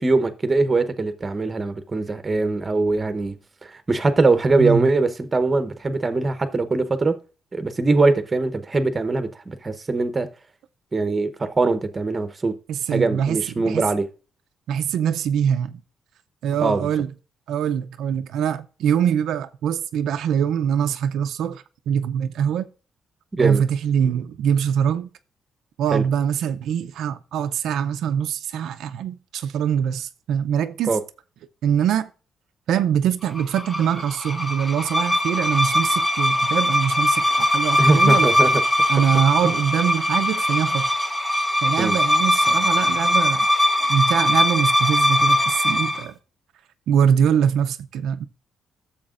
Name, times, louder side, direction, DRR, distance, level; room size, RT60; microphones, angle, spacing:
voice 1, 0.0-3.4 3.6-7.1 7.5-10.3 10.9-12.5 12.9-14.1 16.6-16.9 23.3-23.6 25.9-26.0 30.9-31.0 37.8-38.5 41.8-42.0, right 3 dB, 20° right, 0.8 m, -21 dB
voice 2, 4.6-4.9 12.7-13.9 14.7-15.8 16.4-17.1 17.5-22.7 23.4-25.1 25.8-31.0 31.6-32.1 32.7-38.3 38.9-40.9 41.6-43.5 43.9-46.1 46.9-48.2, right 8 dB, 80° right, 0.4 m, -23 dB
sound 1, 33.4-46.0, left 1 dB, 5° left, 0.9 m, -21 dB
12.5 x 7.1 x 2.4 m
cardioid pair, 140°, 0 cm